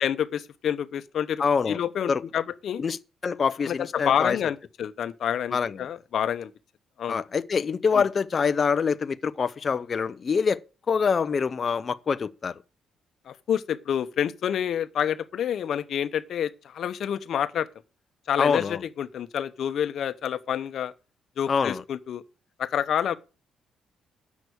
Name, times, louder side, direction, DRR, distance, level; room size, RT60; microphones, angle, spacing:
voice 1, 0.0-2.8 3.6-6.5 7.0-7.2 7.9-8.0 13.3-17.7 18.3-20.9 21.4-22.2 22.6-23.2, left 9 dB, 65° left, 1.0 m, -28 dB
voice 2, 1.4-1.8 2.1-2.2 2.8-3.0 3.2-4.4 5.5-5.8 7.1-10.6 10.9-12.5 18.4-18.8 21.5-21.8, left 6 dB, 40° left, 0.6 m, -25 dB
8.3 x 6.2 x 8.0 m
cardioid pair, 90°, 0 cm